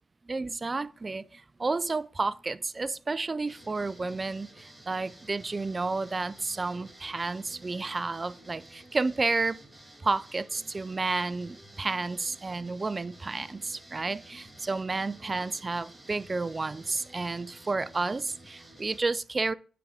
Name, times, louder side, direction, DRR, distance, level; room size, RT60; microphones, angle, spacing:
voice 1, 0.3-9.6 10.0-19.5, right 3 dB, 30° right, 0.4 m, -31 dB
sound 1, 3.5-19.0, right 1 dB, 5° right, 1.6 m, -52 dB
9.3 x 3.6 x 3.3 m
cardioid pair, 70°, 0 cm